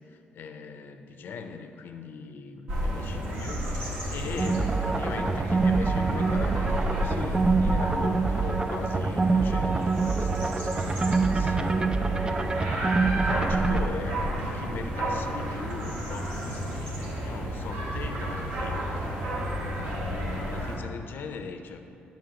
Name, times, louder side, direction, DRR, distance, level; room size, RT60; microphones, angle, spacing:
voice 1, 0.0-19.4 19.8-21.9, left 5 dB, 65° left, 7 dB, 0.6 m, -40 dB
sound 1, 2.7-20.8, equal, 75° right, 1.6 m, -31 dB
sound 2, 4.4-13.9, right 4 dB, 20° right, 0.3 m, -26 dB
11.5 x 5.8 x 2.9 m, 3.0 s
cardioid pair, 95°, 4 cm